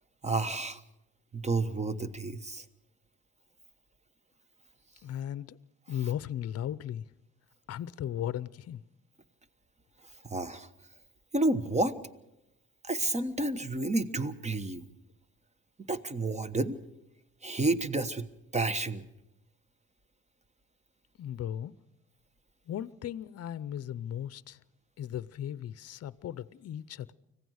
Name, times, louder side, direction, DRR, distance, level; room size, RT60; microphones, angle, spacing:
voice 1, 0.2-0.8 1.3-2.6 10.3-10.7 11.3-11.9 12.8-14.8 15.9-16.8 17.4-18.3 18.5-19.0, right 2 dB, 20° right, 1.2 m, -30 dB
voice 2, 5.0-5.6 5.9-7.0 7.7-8.8 21.2-21.7 22.7-24.6 25.0-27.1, left 10 dB, 55° left, 0.7 m, -36 dB
25.5 x 16.5 x 6.4 m
cardioid pair, 90°, 30 cm